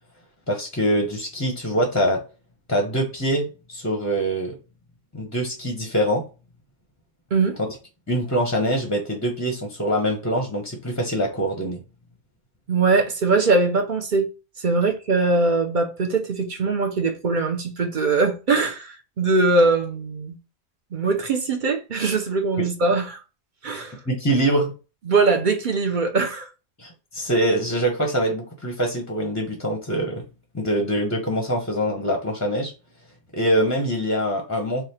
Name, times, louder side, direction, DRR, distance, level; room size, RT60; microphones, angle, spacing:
voice 1, 0.5-2.2 2.7-4.5 5.1-6.3 7.7-7.8 8.1-11.8 22.6-22.7 24.1-24.7 26.8-30.2 30.5-32.7 33.3-34.8, right 1 dB, 20° left, 0.6 m, -24 dB
voice 2, 12.7-14.3 14.6-20.4 20.9-23.2 23.6-24.0 25.1-26.5, right 3 dB, 50° right, 0.7 m, -21 dB
3.4 x 2.4 x 4.2 m
omnidirectional pair, 1.2 m